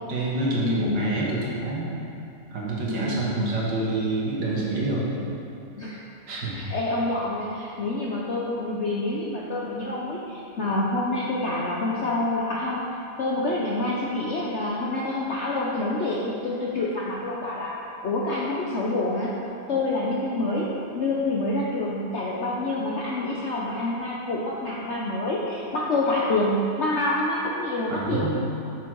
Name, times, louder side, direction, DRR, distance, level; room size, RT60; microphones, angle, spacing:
voice 1, 0.1-2.0 2.5-5.1 6.3-6.6 27.9-28.4, right 2 dB, 70° right, -5 dB, 2.0 m, -27 dB
voice 2, 0.6-1.1 2.9-3.5 5.8-6.0 6.5-12.8 13.2-17.7 18.0-19.3 19.7-20.7 21.0-28.4, left 2 dB, 60° left, -5 dB, 0.7 m, -27 dB
6.6 x 6.2 x 4.6 m, 2.7 s
omnidirectional pair, 2.0 m